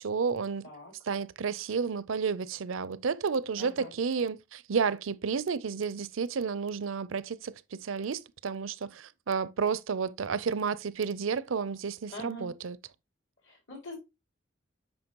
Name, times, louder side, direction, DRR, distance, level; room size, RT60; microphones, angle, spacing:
voice 1, 0.0-0.7 1.0-12.8, right 5 dB, 80° right, 0.5 m, -31 dB
voice 2, 3.6-3.9 12.1-12.5 13.4-14.0, left 1 dB, 65° left, 4.6 m, -43 dB
8.8 x 5.8 x 2.9 m
head